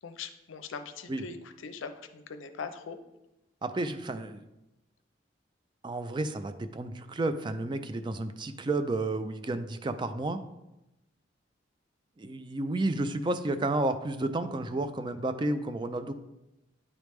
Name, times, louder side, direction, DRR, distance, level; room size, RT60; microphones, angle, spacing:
voice 1, 0.0-3.0, left 5 dB, 90° left, 9 dB, 0.5 m, -41 dB
voice 2, 3.6-4.4 5.8-10.4 12.2-16.1, right 2 dB, 25° right, 10 dB, 0.3 m, -31 dB
9.6 x 3.4 x 3.1 m, 0.94 s
head